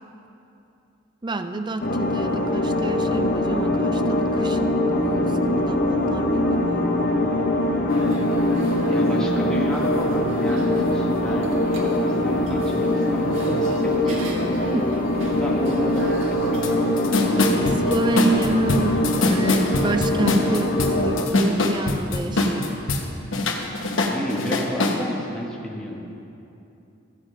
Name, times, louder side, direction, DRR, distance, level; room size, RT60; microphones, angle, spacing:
voice 1, 1.2-5.3 5.6-6.9 14.7-14.9 17.8-22.7, right 2 dB, 25° right, 8 dB, 0.4 m, -28 dB
sound 1, 1.8-21.3, left 1 dB, 45° left, 0.9 m, -22 dB
sound 2, 7.9-21.8, right 1 dB, 80° right, 1.5 m, -41 dB
voice 2, 8.9-14.5 15.4-16.8 24.1-26.1, equal, 5° left, -3 dB, 1.3 m, -31 dB
sound 3, 16.6-16.7 17.0-23.0 23.3-25.0, left 2 dB, 75° left, 1.1 m, -23 dB
15.0 x 7.6 x 5.1 m, 2.8 s
head